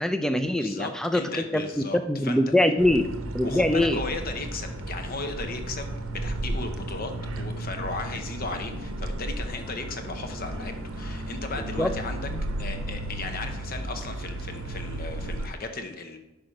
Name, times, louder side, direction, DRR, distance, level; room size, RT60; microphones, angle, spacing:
voice 1, 0.0-4.0 11.8-11.9 12.3-12.4, left 1 dB, 5° left, 7 dB, 0.4 m, -24 dB
voice 2, 0.6-2.0 2.2-2.5 3.4-12.3 12.6-16.2, left 3 dB, 45° left, 7 dB, 0.7 m, -36 dB
sound 1, 2.8-15.5, right 1 dB, 70° right, 0.7 m, -34 dB
6.0 x 4.9 x 5.2 m, 0.98 s
head